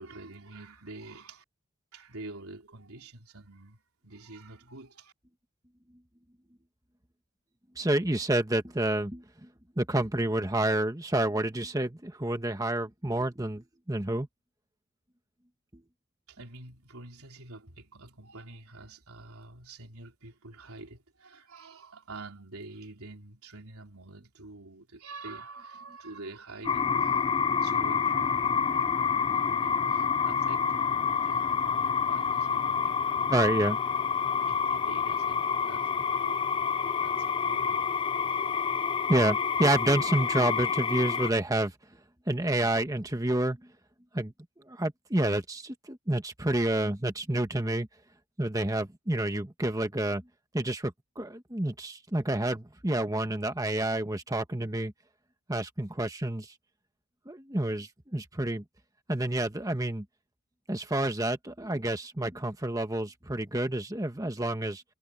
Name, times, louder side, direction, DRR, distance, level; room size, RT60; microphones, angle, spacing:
voice 1, 0.0-1.4 1.9-5.1 16.3-27.3 27.6-33.7 34.5-35.4 35.7-36.5 37.0-37.9, right 2 dB, 90° right, 4.0 m, -47 dB
voice 2, 7.8-9.5 9.8-14.3 15.7-15.8 33.3-33.8 39.1-41.7 42.3-43.7 44.1-44.3 44.7-47.9 48.4-50.2 50.5-54.9 55.5-56.5 57.2-58.6 59.1-60.0 60.7-64.8, right 1 dB, 15° right, 1.4 m, -29 dB
sound 1, 26.6-41.3, left 6 dB, 25° left, 0.3 m, -28 dB
head